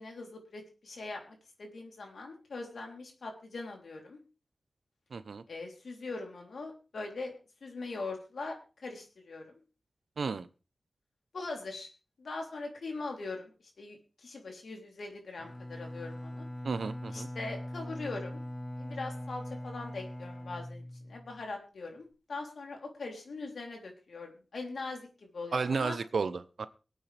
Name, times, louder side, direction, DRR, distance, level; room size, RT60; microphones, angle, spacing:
voice 1, 0.0-4.2 5.5-7.3 7.6-9.6 11.3-11.9 12.2-16.5 17.1-18.4 18.8-26.0, left 3 dB, 80° left, 2 dB, 3.4 m, -41 dB
voice 2, 5.1-5.4 10.2-10.5 16.6-17.3 25.5-26.7, right 5 dB, 85° right, 13 dB, 0.8 m, -33 dB
Bowed string instrument, 15.4-21.4, left 1 dB, 30° left, 5.3 m, -41 dB
23.5 x 8.7 x 3.4 m, 0.34 s
wide cardioid pair, 105°, 0 cm